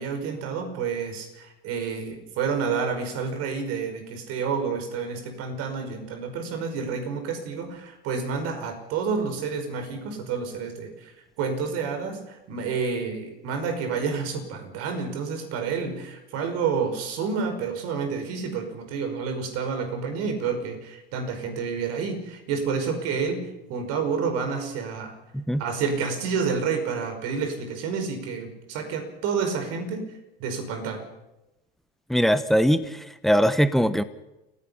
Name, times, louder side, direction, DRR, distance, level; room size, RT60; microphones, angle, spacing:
voice 1, 0.0-11.1 11.4-23.4 23.7-25.2 25.6-30.1 30.4-31.0, right 5 dB, 55° right, 6 dB, 5.4 m, -29 dB
voice 2, 32.1-34.0, equal, ahead, 12 dB, 1.3 m, -21 dB
29.5 x 15.5 x 5.8 m, 0.97 s
hypercardioid pair, 85°, 29 cm